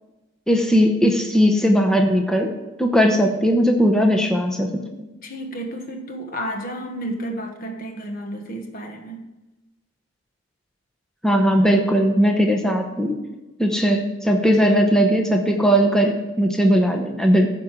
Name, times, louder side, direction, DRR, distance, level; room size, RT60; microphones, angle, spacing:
voice 1, 0.5-5.1 11.2-13.2 13.6-17.5, equal, 5° left, 2 dB, 0.8 m, -18 dB
voice 2, 5.2-9.3, right 1 dB, 45° left, 4 dB, 1.2 m, -31 dB
14.5 x 5.1 x 5.9 m, 1.1 s
head